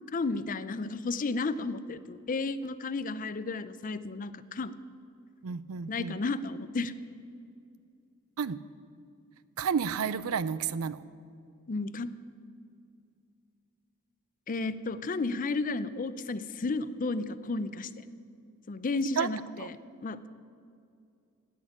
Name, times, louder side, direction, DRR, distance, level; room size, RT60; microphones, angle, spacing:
voice 1, 0.1-4.7 5.9-6.9 11.7-12.1 14.5-18.1 18.7-20.3, left 3 dB, 40° left, 14 dB, 0.5 m, -33 dB
voice 2, 5.4-6.1 8.4-8.6 9.6-11.0 19.2-19.3 19.6-19.7, right 6 dB, 70° right, 17 dB, 0.5 m, -31 dB
16.5 x 6.5 x 9.8 m, 2.4 s
head